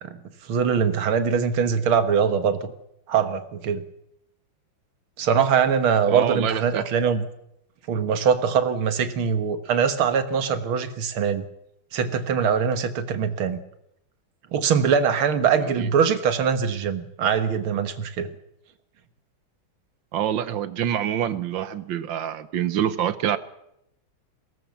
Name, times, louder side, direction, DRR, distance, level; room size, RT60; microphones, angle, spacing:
voice 1, 0.0-2.7 3.1-3.8 5.2-7.3 7.9-11.5 11.9-13.6 14.5-18.3, right 6 dB, 90° right, 10 dB, 2.2 m, -22 dB
voice 2, 6.1-6.8 15.6-15.9 20.1-23.4, right 10 dB, 70° right, 14 dB, 1.6 m, -26 dB
22.0 x 18.0 x 7.2 m, 0.80 s
omnidirectional pair, 2.2 m